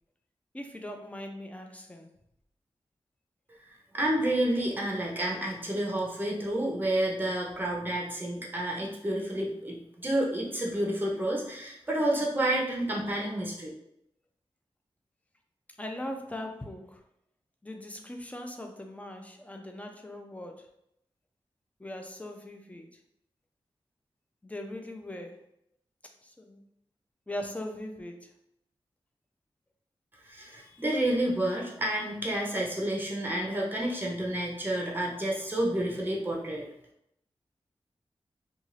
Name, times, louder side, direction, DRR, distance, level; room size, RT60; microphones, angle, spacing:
voice 1, 0.5-2.1 15.8-17.0 17.6-20.7 21.8-23.0 24.4-25.4 26.2-26.6 27.3-28.3, left 1 dB, 15° left, 4 dB, 0.5 m, -40 dB
voice 2, 3.9-13.7 30.2-36.7, right 1 dB, 20° right, -2 dB, 0.8 m, -30 dB
2.6 x 2.4 x 3.0 m, 0.78 s
cardioid pair, 50°, 10 cm